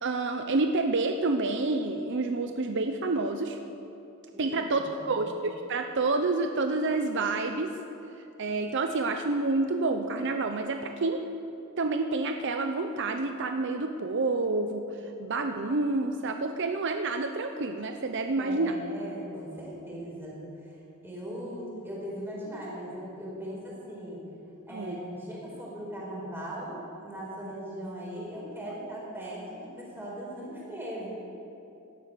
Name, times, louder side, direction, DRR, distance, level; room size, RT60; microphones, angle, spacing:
voice 1, 0.0-3.6 4.4-7.7 8.4-11.2 11.8-14.9 15.2-18.7 24.7-25.0, right 3 dB, 55° right, 6 dB, 0.7 m, -28 dB
voice 2, 4.3-5.3 18.4-20.8 21.0-24.2 24.7-31.1, equal, 10° right, -5 dB, 4.9 m, -39 dB
17.0 x 12.5 x 6.7 m, 2.9 s
head